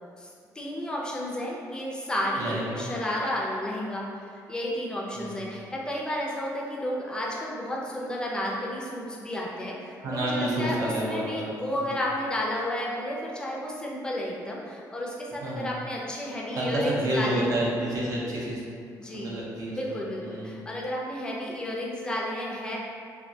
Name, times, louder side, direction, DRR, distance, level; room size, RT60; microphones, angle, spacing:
voice 1, 0.2-17.5 19.0-19.3 19.7-22.8, left 1 dB, 10° left, -4 dB, 0.3 m, -32 dB
voice 2, 2.4-2.8 5.1-5.5 10.0-11.5 11.9-12.0 15.4-15.7 16.5-18.6 19.0-19.9 20.2-20.5, right 1 dB, 55° right, -5 dB, 0.5 m, -29 dB
2.2 x 2.1 x 2.6 m, 2.3 s
cardioid pair, 140°, 7 cm